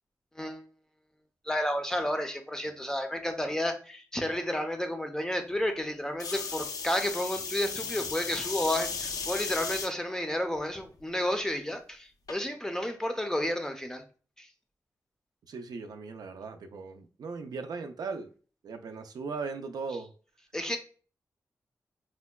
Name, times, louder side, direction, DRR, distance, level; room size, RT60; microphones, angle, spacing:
voice 1, 1.5-14.0 14.4-14.5 20.5-20.8, left 1 dB, 10° left, 0.5 m, -31 dB
sound 1, 6.2-9.9 10.6-11.0 12.3-12.4, left 5 dB, 70° left, 0.4 m, -35 dB
voice 2, 15.5-18.3 18.6-20.1, right 4 dB, 90° right, 0.4 m, -38 dB
4.3 x 2.1 x 2.2 m
wide cardioid pair, 135°, 7 cm